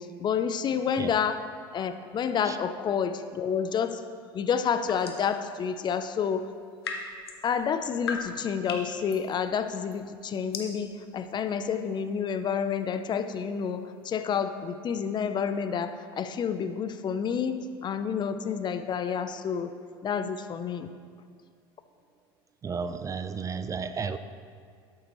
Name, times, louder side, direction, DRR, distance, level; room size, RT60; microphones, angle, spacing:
voice 1, 0.0-1.4 1.7-4.0 4.3-6.5 7.4-19.7 20.0-20.9, left 7 dB, 35° left, 10 dB, 0.6 m, -29 dB
sound 1, 4.6-5.4 6.4-14.2, left 5 dB, 85° left, 0.9 m, -41 dB
voice 2, 22.6-24.2, right 5 dB, 25° right, 11 dB, 0.4 m, -33 dB
12.0 x 8.1 x 3.1 m, 2.1 s
hypercardioid pair, 80°, 13 cm